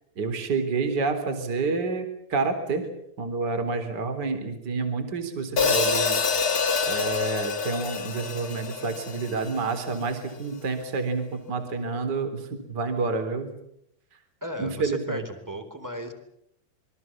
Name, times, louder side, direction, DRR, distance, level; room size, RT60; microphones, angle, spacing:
voice 1, 0.2-2.9 3.2-6.2 6.9-13.5 14.6-15.2, right 4 dB, 25° right, 7 dB, 3.7 m, -28 dB
Hi-hat, 5.6-9.8, left 5 dB, 55° left, 1.0 m, -26 dB
voice 2, 14.4-16.1, equal, 5° right, 8 dB, 3.1 m, -35 dB
28.0 x 24.0 x 7.4 m, 0.76 s
omnidirectional pair, 5.1 m